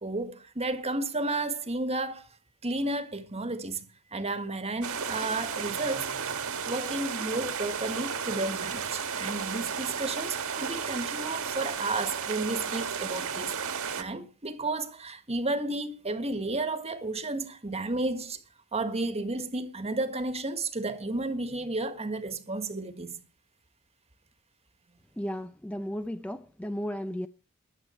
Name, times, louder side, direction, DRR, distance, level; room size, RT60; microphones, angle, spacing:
voice 1, 0.0-2.2 2.6-3.9 4.1-13.6 14.0-18.4 18.7-23.2, right 2 dB, 30° right, 1.6 m, -32 dB
sound 1, 4.8-14.0, right 6 dB, 70° right, 1.8 m, -33 dB
voice 2, 25.2-27.3, equal, 5° left, 0.6 m, -34 dB
21.0 x 8.2 x 4.4 m
head